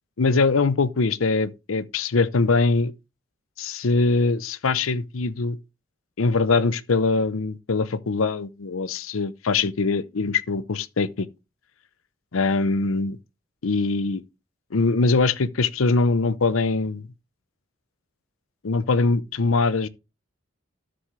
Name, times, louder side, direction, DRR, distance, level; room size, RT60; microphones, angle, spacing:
voice 1, 0.2-2.9 3.6-5.6 6.2-11.3 12.3-13.2 13.6-14.2 14.7-17.0 18.6-19.9, left 3 dB, 90° left, 0.7 m, -22 dB
13.0 x 6.2 x 3.2 m
head